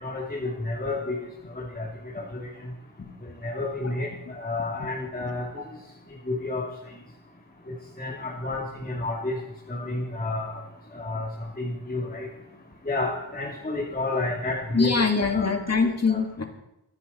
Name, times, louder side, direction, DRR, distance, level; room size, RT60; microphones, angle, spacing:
voice 1, 0.0-1.2 1.5-1.9 3.4-4.1 4.4-5.5 6.3-6.6 7.7-9.4 9.7-10.6 10.9-11.3 11.6-12.3 12.9-14.9 15.3-15.5 16.1-16.2, left 2 dB, 20° left, -4 dB, 2.5 m, -30 dB
voice 2, 14.7-16.4, left 4 dB, 35° left, 4 dB, 1.9 m, -23 dB
23.5 x 10.0 x 4.2 m, 0.90 s
wide cardioid pair, 105°, 42 cm